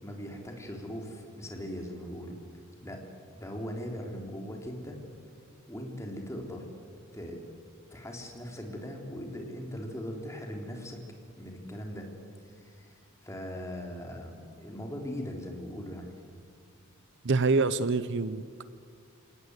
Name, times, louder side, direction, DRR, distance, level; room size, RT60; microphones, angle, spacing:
voice 1, 0.0-2.4 2.8-3.0 3.3-5.0 5.7-6.7 7.1-7.4 7.9-11.0 11.4-12.1 12.4-16.1, equal, 15° left, 2 dB, 3.5 m, -40 dB
voice 2, 17.2-18.6, right 3 dB, 55° right, 15 dB, 0.7 m, -26 dB
28.0 x 18.0 x 8.1 m, 2.2 s
head